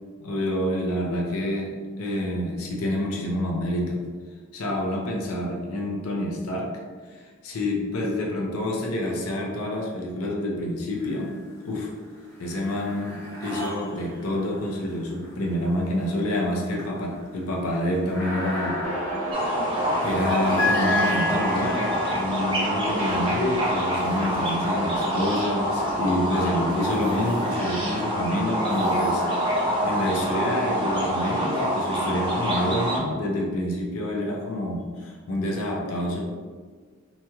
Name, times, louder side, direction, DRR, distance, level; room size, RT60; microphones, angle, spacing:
voice 1, 0.2-1.7 2.0-4.0 4.5-6.7 7.1-11.4 11.7-11.9 12.4-18.9 19.4-19.5 20.0-36.2, left 1 dB, 75° left, -1 dB, 0.5 m, -28 dB
sound 1, 11.0-11.6 12.0-25.2 25.8-30.3, left 1 dB, 15° left, 0.8 m, -34 dB
sound 2, 18.8-25.9, right 1 dB, 75° right, 0.4 m, -35 dB
sound 3, 19.3-33.0, equal, 20° right, 0.5 m, -26 dB
2.9 x 2.8 x 2.3 m, 1.5 s
head